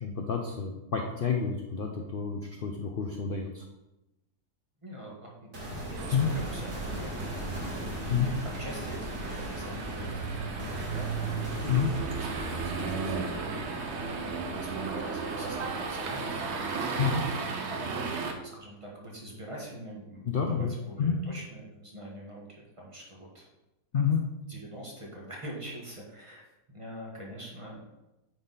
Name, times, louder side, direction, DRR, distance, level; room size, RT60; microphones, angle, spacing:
voice 1, 0.0-3.6 6.1-6.3 8.1-8.3 11.6-11.9 17.0-17.2 20.3-20.7 21.0-21.2 23.9-24.2, left 6 dB, 75° left, 2 dB, 0.5 m, -29 dB
voice 2, 4.8-13.5 14.1-17.5 18.2-23.5 24.5-27.9, right 1 dB, 20° right, -3 dB, 1.3 m, -45 dB
sound 1, 5.5-16.9, right 1 dB, 70° right, 3.1 m, -39 dB
sound 2, 6.0-18.3, right 4 dB, 55° right, 0.9 m, -35 dB
9.3 x 4.0 x 4.0 m, 0.96 s
omnidirectional pair, 1.8 m